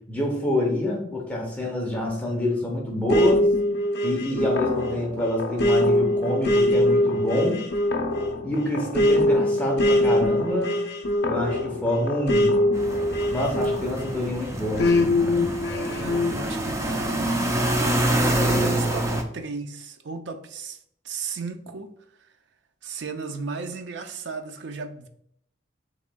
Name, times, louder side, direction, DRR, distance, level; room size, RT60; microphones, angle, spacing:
voice 1, 0.0-3.5 4.0-7.6 8.4-10.9 11.3-12.6 13.3-15.4, left 1 dB, 10° left, -2 dB, 0.8 m, -27 dB
sound 1, 3.1-14.2 14.8-16.3, left 1 dB, 60° left, 0.6 m, -23 dB
sound 2, 12.7-19.2, right 1 dB, 15° right, 0.4 m, -26 dB
voice 2, 15.8-17.4 17.8-21.9 22.2-22.3 22.8-25.1, right 4 dB, 65° right, 7 dB, 0.5 m, -35 dB
7.1 x 3.0 x 2.2 m, 0.70 s
head